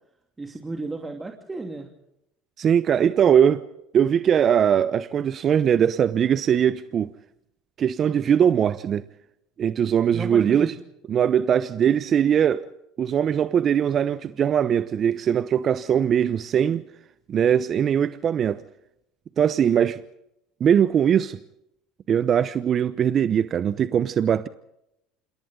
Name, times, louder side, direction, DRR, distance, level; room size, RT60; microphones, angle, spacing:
voice 1, 0.4-1.9 10.1-10.8, right 3 dB, 15° right, 2.8 m, -33 dB
voice 2, 2.6-3.6 3.9-7.1 7.8-9.0 9.6-10.7 11.1-12.7 13.0-16.8 17.3-18.6 19.4-20.0 20.6-21.4 22.1-24.5, right 8 dB, 40° right, 0.9 m, -21 dB
28.0 x 27.5 x 3.9 m
hypercardioid pair, 85°, 0 cm